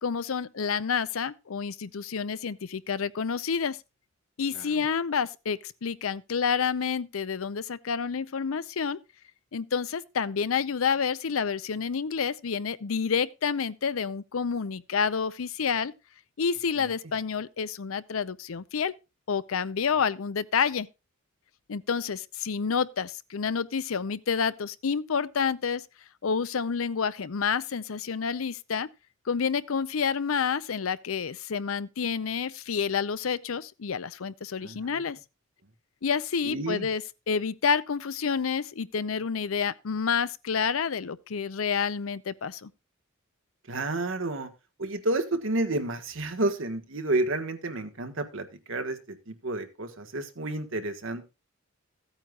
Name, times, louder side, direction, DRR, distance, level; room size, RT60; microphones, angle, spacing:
voice 1, 0.0-3.8 4.4-9.0 9.5-15.9 16.4-18.9 19.3-20.9 21.7-25.8 26.2-28.9 29.3-35.2 36.0-37.0 37.3-42.7, left 6 dB, 80° left, 0.6 m, -29 dB
voice 2, 4.5-4.9 16.8-16.9 34.6-35.0 36.4-36.9 43.7-44.5 44.8-51.3, right 2 dB, 65° right, 1.6 m, -31 dB
15.5 x 8.9 x 2.4 m
head